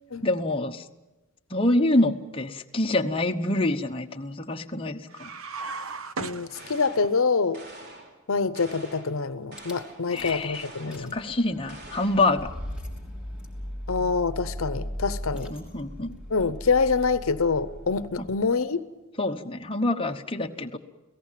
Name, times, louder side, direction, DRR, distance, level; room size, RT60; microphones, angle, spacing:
voice 1, 0.2-0.8 1.5-5.3 10.1-12.5 15.3-16.2 18.2-18.3 19.2-20.8, left 2 dB, 25° left, 3 dB, 1.0 m, -26 dB
sound 1, 5.1-7.1, right 4 dB, 75° right, 1.1 m, -36 dB
voice 2, 6.2-7.6 8.3-11.1 13.9-15.5 16.3-18.9, left 4 dB, 70° left, 13 dB, 0.8 m, -26 dB
sound 2, 6.5-7.2 7.5-8.2 8.5-9.2 9.5-10.1 10.5-11.1 11.7-12.3, right 2 dB, 50° right, 3.1 m, -45 dB
Rattle / Car / Engine starting, 9.6-9.7 10.2-10.5 10.8-18.5, equal, 5° right, 3.3 m, -38 dB
29.0 x 17.5 x 7.5 m, 1.1 s
head